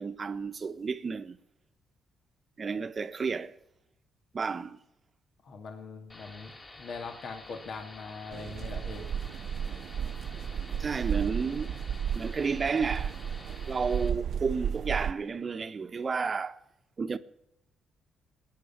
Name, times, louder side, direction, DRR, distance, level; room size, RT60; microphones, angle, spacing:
voice 1, 0.0-1.4 2.6-3.6 4.3-4.8 10.8-11.8 12.1-13.1 13.7-16.6 17.0-17.2, right 5 dB, 35° right, 1.1 m, -31 dB
voice 2, 5.4-6.5 6.8-9.1, left 4 dB, 60° left, 2.3 m, -41 dB
sound 1, 6.1-14.1, left 2 dB, 30° left, 3.4 m, -50 dB
sound 2, 8.3-15.1, right 8 dB, 65° right, 0.7 m, -33 dB
19.5 x 9.7 x 7.2 m
cardioid pair, 90°, 0 cm